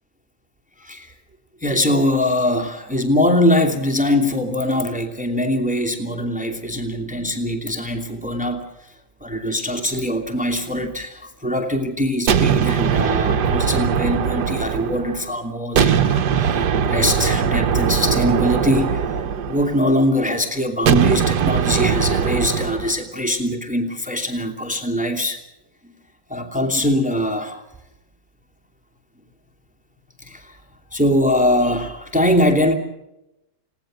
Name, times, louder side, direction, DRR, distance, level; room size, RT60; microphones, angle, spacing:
voice 1, 0.8-1.1 1.6-19.1 19.5-25.4 25.8-25.9 26.3-27.6 30.2-30.6 30.9-32.7, left 1 dB, 5° right, 4 dB, 2.6 m, -22 dB
sound 1, 12.3-15.3 15.8-20.0 20.9-23.0, right 7 dB, 65° right, 1.6 m, -20 dB
29.5 x 18.0 x 6.5 m, 0.89 s
omnidirectional pair, 2.0 m